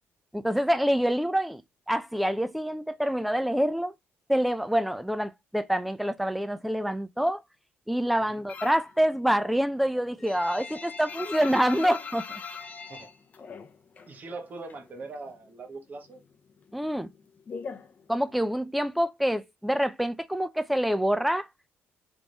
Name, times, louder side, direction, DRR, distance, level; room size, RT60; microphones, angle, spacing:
voice 1, 0.3-1.6 1.9-3.9 4.3-7.4 7.9-12.4 16.7-17.1 18.1-21.5, equal, ahead, 0.4 m, -26 dB
sound 1, 8.5-8.9 9.3-14.2 14.4-15.5 15.8-18.6, left 5 dB, 35° left, 0.6 m, -41 dB
voice 2, 12.8-13.1 14.1-16.2, right 3 dB, 35° right, 1.1 m, -41 dB
3.5 x 3.0 x 3.8 m
cardioid pair, 125°, 5 cm